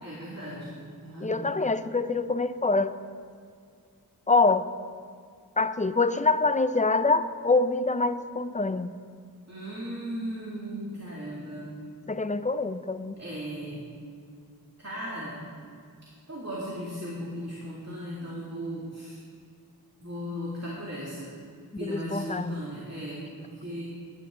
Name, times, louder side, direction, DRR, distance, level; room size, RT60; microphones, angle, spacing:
voice 1, 0.0-1.5 9.5-11.8 13.2-13.9 14.8-15.5 16.3-19.2 20.0-21.3 21.7-23.8, equal, 45° right, -7 dB, 2.4 m, -37 dB
voice 2, 1.2-2.9 4.3-4.7 5.6-8.9 12.1-13.2 21.7-22.6, left 3 dB, 20° left, 12 dB, 0.5 m, -25 dB
16.5 x 11.0 x 3.7 m, 2.2 s
wide cardioid pair, 45°, 37 cm